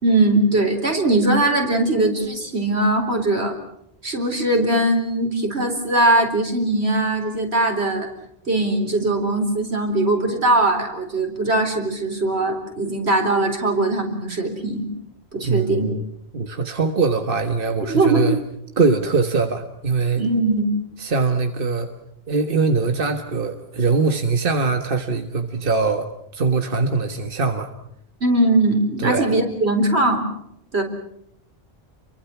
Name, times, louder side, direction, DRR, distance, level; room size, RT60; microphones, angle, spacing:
voice 1, 0.0-3.5 4.0-8.1 8.5-14.9 15.3-15.9 17.9-18.3 20.2-20.8 28.2-30.2 30.7-30.8, right 2 dB, 85° right, 4 dB, 4.5 m, -20 dB
voice 2, 15.4-16.0 16.3-18.4 18.8-20.2 21.0-21.9 22.3-26.1 26.3-27.7 29.0-29.3, right 4 dB, 60° right, 6 dB, 1.8 m, -22 dB
30.0 x 23.5 x 6.0 m, 0.73 s
omnidirectional pair, 1.1 m